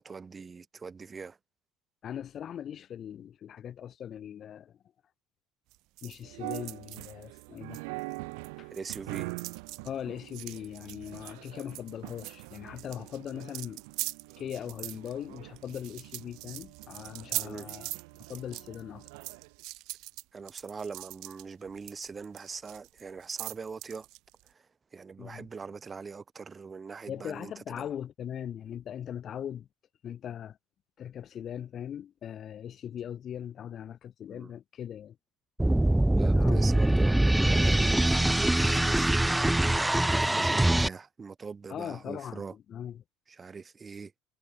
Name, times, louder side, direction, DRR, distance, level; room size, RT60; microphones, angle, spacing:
voice 1, 0.0-1.4 8.7-9.3 17.4-17.7 20.3-24.1 24.4-27.9 34.3-34.5 36.1-39.2 40.1-42.5 43.3-44.1, right 5 dB, 20° right, 3.4 m, -42 dB
voice 2, 2.0-4.7 6.0-7.8 8.6-8.7 9.8-13.8 14.4-17.9 18.3-19.1 25.2-25.5 27.1-29.7 30.0-30.6 31.0-35.2 36.2-36.7 41.7-42.4 42.7-43.0, left 9 dB, 40° left, 5.3 m, -40 dB
sound 1, 5.7-8.5 8.7-24.5, right 19 dB, 65° right, 3.4 m, -42 dB
sound 2, 6.2-19.5, right 30 dB, 85° right, 5.1 m, -44 dB
sound 3, 35.6-40.9, right 1 dB, 5° right, 0.5 m, -23 dB
cardioid pair, 130°, 0 cm